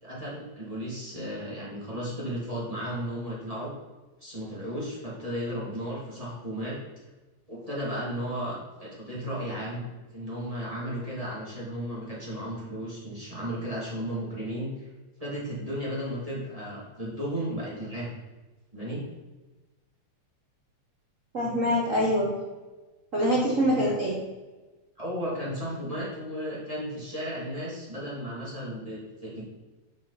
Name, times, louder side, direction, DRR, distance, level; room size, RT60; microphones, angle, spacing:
voice 1, 0.0-3.7 4.2-6.8 7.5-9.9 10.1-14.9 15.2-18.1 18.7-19.0 25.0-29.4, equal, 15° right, -7 dB, 2.0 m, -34 dB
voice 2, 21.3-22.3 23.1-24.2, equal, 55° right, -4 dB, 0.9 m, -24 dB
8.8 x 5.4 x 4.1 m, 1.2 s
omnidirectional pair, 3.6 m